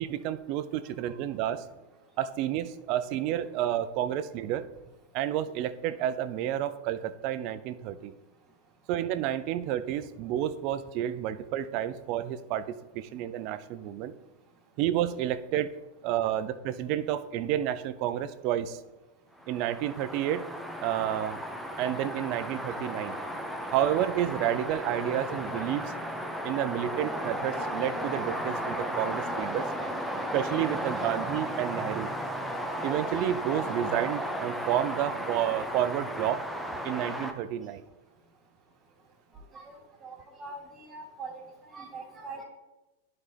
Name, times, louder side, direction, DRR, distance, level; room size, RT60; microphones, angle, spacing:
voice 1, 0.0-1.6 2.2-4.7 5.1-8.1 8.9-14.1 14.8-15.7 16.0-18.8 19.5-20.5 20.8-21.4 21.8-23.2 23.7-25.9 26.4-29.6 30.3-32.1 32.8-36.4 36.8-37.8, right 11 dB, 50° right, 13 dB, 0.4 m, -30 dB
sound 1, 19.4-37.3, equal, ahead, 0.8 m, -34 dB
voice 2, 29.6-29.9 30.9-31.1 34.0-34.2 34.5-34.6 39.5-39.8 40.0-42.4, right 3 dB, 25° right, -6 dB, 2.0 m, -44 dB
11.0 x 4.3 x 3.3 m, 1.1 s
hypercardioid pair, 105°, 0 cm